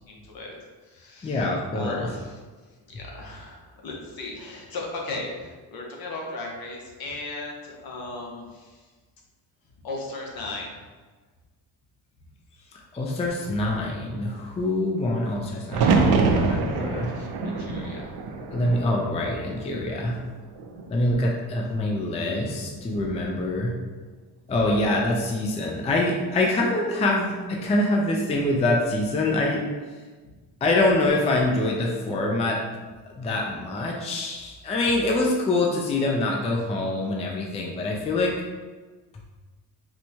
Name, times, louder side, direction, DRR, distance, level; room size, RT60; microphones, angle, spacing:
voice 1, 0.1-0.6 0.8-1.5 1.7-2.4 2.9-8.8 9.8-10.8 17.1-18.1 30.2-30.3, left 2 dB, 60° left, -1 dB, 0.9 m, -36 dB
voice 2, 1.2-2.1 12.7-17.1 18.5-20.2 20.9-23.7 24.5-30.0 30.6-32.7 33.2-38.3, left 2 dB, 15° left, -1 dB, 0.4 m, -25 dB
sound 1, 15.7-19.7 20.1-20.9 22.7-23.2, right 4 dB, 65° right, 0.6 m, -25 dB
4.4 x 2.2 x 2.7 m, 1.4 s
cardioid pair, 105°, 41 cm